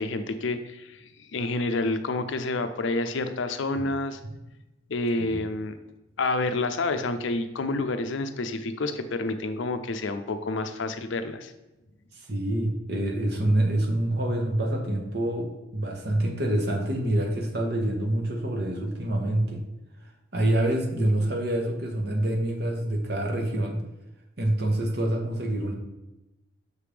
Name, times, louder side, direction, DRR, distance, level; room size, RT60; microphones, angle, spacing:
voice 1, 0.0-4.2 4.9-5.7 6.2-11.5, left 2 dB, 70° left, 9 dB, 0.5 m, -29 dB
voice 2, 12.1-19.6 20.3-23.8 24.4-25.7, right 1 dB, 50° right, 2 dB, 1.1 m, -26 dB
6.5 x 3.4 x 5.0 m, 1.0 s
head